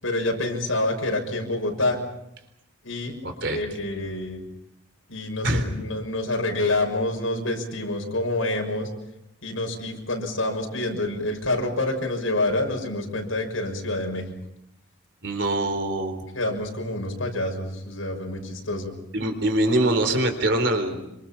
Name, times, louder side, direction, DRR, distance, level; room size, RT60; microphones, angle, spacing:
voice 1, 0.0-2.0 2.8-3.1 3.5-4.4 5.1-8.9 9.4-14.3 16.3-18.9, left 2 dB, 90° left, 2 dB, 6.5 m, -27 dB
voice 2, 3.2-3.6 5.4-5.6 15.2-16.2 19.1-21.1, right 1 dB, 60° right, 6 dB, 3.8 m, -23 dB
28.0 x 25.5 x 5.9 m, 0.86 s
head